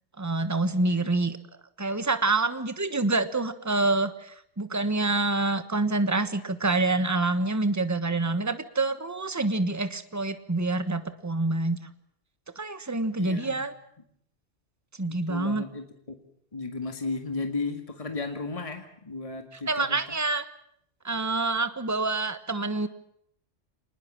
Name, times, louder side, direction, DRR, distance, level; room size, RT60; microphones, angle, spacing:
voice 1, 0.2-1.4 1.8-11.9 12.6-13.7 15.0-15.6 19.7-20.4 21.0-22.9, right 2 dB, 15° right, 11 dB, 1.3 m, -27 dB
voice 2, 13.2-13.6 15.1-15.8 16.5-20.0, left 3 dB, 30° left, 6 dB, 2.0 m, -34 dB
26.0 x 20.0 x 7.4 m, 0.68 s
omnidirectional pair, 1.3 m